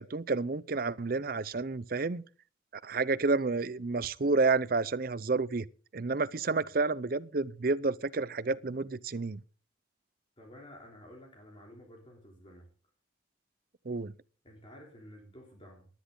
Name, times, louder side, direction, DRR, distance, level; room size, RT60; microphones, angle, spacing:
voice 1, 0.0-2.2 2.8-5.7 5.9-9.4 13.9-14.1, right 3 dB, 50° right, 0.6 m, -30 dB
voice 2, 10.4-12.7 14.4-15.9, equal, 30° left, 3.2 m, -52 dB
18.5 x 10.5 x 3.8 m
head